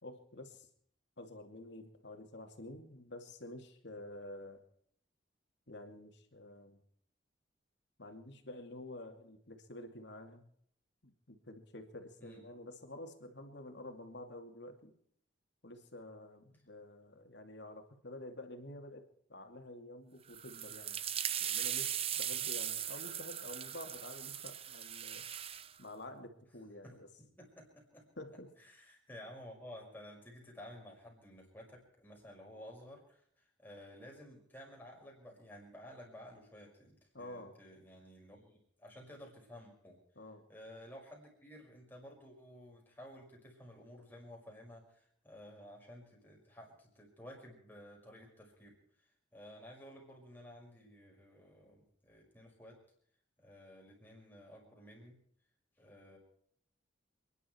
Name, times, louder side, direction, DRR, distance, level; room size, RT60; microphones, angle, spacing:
voice 1, 0.0-0.7 1.2-4.6 5.7-6.8 8.0-10.4 11.0-14.9 15.6-19.0 19.3-21.0 21.4-25.3 25.8-27.1 28.2-28.5 37.1-37.6 40.2-40.5, left 1 dB, 65° left, 5 dB, 2.6 m, -49 dB
sound 1, 20.3-25.7, right 10 dB, 30° right, 0.7 m, -39 dB
voice 2, 26.8-28.1 28.6-40.0 40.5-48.8 49.0-52.8 53.4-55.2 55.8-56.2, equal, 10° left, -1 dB, 5.6 m, -54 dB
28.5 x 11.0 x 4.6 m, 0.65 s
head